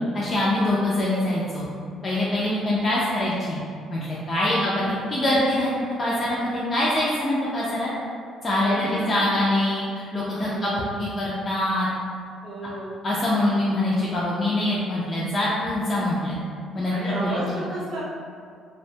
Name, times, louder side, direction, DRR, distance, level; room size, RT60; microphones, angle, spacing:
voice 1, 0.1-1.6 2.0-3.6 3.9-7.9 8.4-11.9 13.0-16.4 16.7-17.4, left 1 dB, 30° left, -7 dB, 0.3 m, -24 dB
voice 2, 4.4-5.0 8.6-9.1 10.4-10.9 12.4-13.0 16.9-18.0, right 1 dB, 60° right, -5 dB, 0.7 m, -33 dB
2.5 x 2.1 x 2.6 m, 2.2 s
cardioid pair, 140°, 0 cm